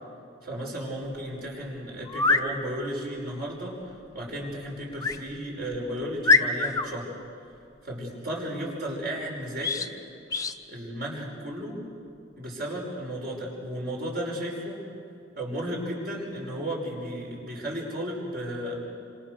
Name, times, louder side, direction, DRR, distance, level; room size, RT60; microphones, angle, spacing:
voice 1, 0.4-7.1 7.8-10.0 10.7-11.8 12.4-14.8 15.4-18.9, equal, 50° right, -2 dB, 5.8 m, -34 dB
sound 1, 2.0-2.5 5.0-5.2 5.7-5.8 6.2-6.9 9.6-9.9 10.3-10.6, left 3 dB, 15° left, 0.9 m, -23 dB
27.5 x 26.5 x 6.7 m, 2.5 s
head